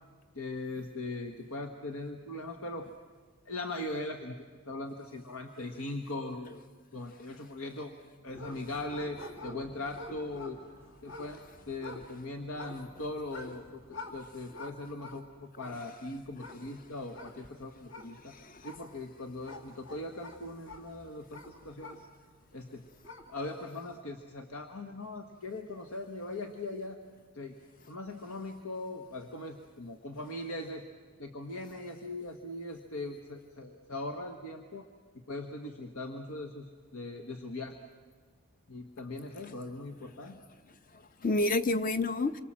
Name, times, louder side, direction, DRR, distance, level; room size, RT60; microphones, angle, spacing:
voice 1, 0.3-2.9 3.5-4.4 4.7-6.6 6.9-7.9 8.2-10.6 11.0-13.8 14.1-15.3 15.6-18.3 18.6-22.1 22.5-22.8 23.3-27.0 27.3-27.6 27.9-30.8 31.2-34.9 35.1-37.8 38.7-40.4, left 2 dB, 90° left, 5 dB, 1.5 m, -40 dB
sound 1, 8.3-22.4 22.8-23.5, left 2 dB, 60° left, 2.6 m, -49 dB
voice 2, 18.2-18.7 39.3-39.5 40.2-40.4 40.9-42.4, left 2 dB, 40° left, 12 dB, 0.8 m, -30 dB
28.0 x 24.5 x 7.6 m, 1.5 s
head